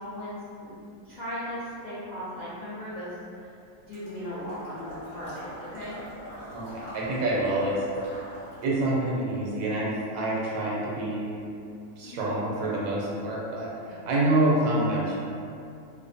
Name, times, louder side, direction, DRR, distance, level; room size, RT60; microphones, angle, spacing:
voice 1, 0.0-3.5 3.9-6.0 12.0-12.3, equal, 70° left, -12 dB, 0.4 m, -38 dB
Water / Liquid, 3.9-8.8, equal, 40° left, 1.1 m, -43 dB
voice 2, 6.5-7.8 8.6-11.4 12.0-15.2, right 1 dB, 85° right, -5 dB, 1.1 m, -27 dB
2.6 x 2.1 x 2.6 m, 2.5 s
omnidirectional pair, 1.4 m